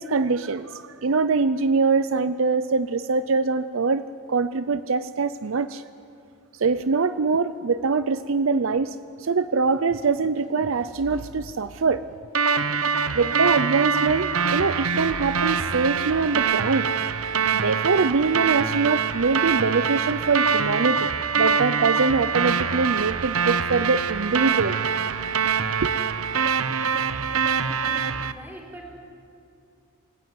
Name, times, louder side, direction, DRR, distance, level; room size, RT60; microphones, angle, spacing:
voice 1, 0.0-4.0 4.3-5.8 6.6-12.1 13.1-16.9 17.5-21.1 21.3-24.8 25.8-25.9, right 4 dB, 65° right, 13 dB, 0.6 m, -23 dB
sound 1, 12.4-28.3, right 6 dB, 85° right, 0.9 m, -24 dB
voice 2, 27.5-28.9, right 1 dB, 10° right, 0 dB, 4.2 m, -43 dB
27.5 x 16.5 x 9.3 m, 2.6 s
head